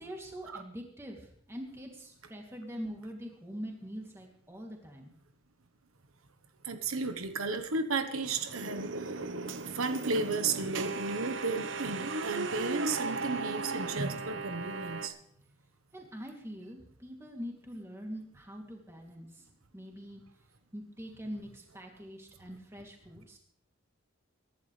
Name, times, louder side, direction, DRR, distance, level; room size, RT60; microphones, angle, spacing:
voice 1, 0.0-5.1 15.9-20.2 20.7-23.4, equal, 10° right, 0 dB, 2.7 m, -44 dB
voice 2, 6.6-9.3 9.6-15.1, right 3 dB, 90° right, 8 dB, 1.2 m, -34 dB
sound 1, 8.2-15.1, right 3 dB, 65° right, 1.0 m, -36 dB
23.5 x 11.5 x 3.3 m, 0.64 s
head